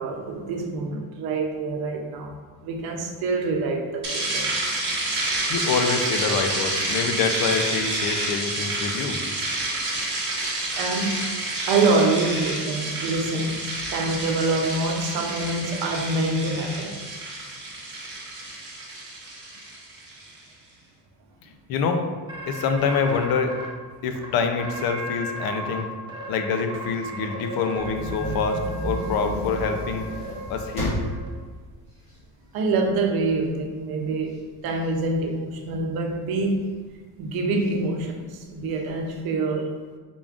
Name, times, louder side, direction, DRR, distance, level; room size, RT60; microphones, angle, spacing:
voice 1, 0.0-2.4 2.6-4.5 10.7-11.3 11.7-13.6 13.9-17.0 32.5-34.3 34.6-36.7 37.2-39.7, right 3 dB, 75° right, 3 dB, 0.6 m, -25 dB
sound 1, 4.0-20.3, right 2 dB, 30° right, 0.9 m, -29 dB
voice 2, 5.5-9.2 21.4-22.0 22.5-23.6 24.0-25.9 26.3-30.1 30.5-31.0, left 5 dB, 75° left, 5 dB, 0.5 m, -26 dB
sound 2, 22.3-23.7 24.1-24.2 24.6-25.8 26.1-31.3, right 1 dB, 15° right, 0.6 m, -35 dB
sound 3, 27.8-32.9 33.4-33.5 33.9-35.9 36.5-37.0 37.6-37.7 38.0-38.1 38.6-39.2, right 1 dB, 15° left, 1.2 m, -33 dB
3.7 x 3.6 x 2.4 m, 1.5 s
cardioid pair, 155°, 37 cm